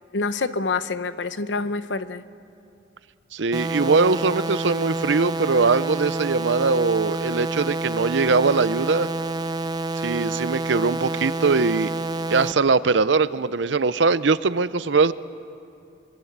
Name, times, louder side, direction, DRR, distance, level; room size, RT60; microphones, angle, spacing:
voice 1, 0.1-2.2, left 3 dB, 80° left, 13 dB, 0.8 m, -27 dB
voice 2, 3.3-9.1 10.0-11.9 12.3-15.1, right 4 dB, 80° right, 15 dB, 0.7 m, -21 dB
sound 1, 3.5-12.5, right 2 dB, 20° right, 0.5 m, -28 dB
26.0 x 24.0 x 7.4 m, 2.6 s
head